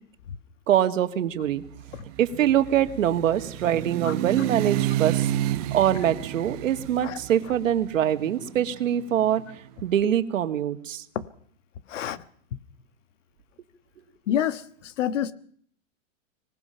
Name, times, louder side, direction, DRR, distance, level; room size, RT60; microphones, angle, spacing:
voice 1, 0.7-1.6 2.2-5.3 5.7-9.4 9.8-11.0, right 10 dB, 80° right, 9 dB, 2.1 m, -24 dB
sound 1, 1.7-9.7, right 14 dB, 30° right, 1.0 m, -31 dB
voice 2, 11.9-12.2 14.3-15.3, left 10 dB, 70° left, 13 dB, 1.5 m, -28 dB
25.5 x 19.0 x 5.8 m, 0.62 s
supercardioid pair, 170°, 39 cm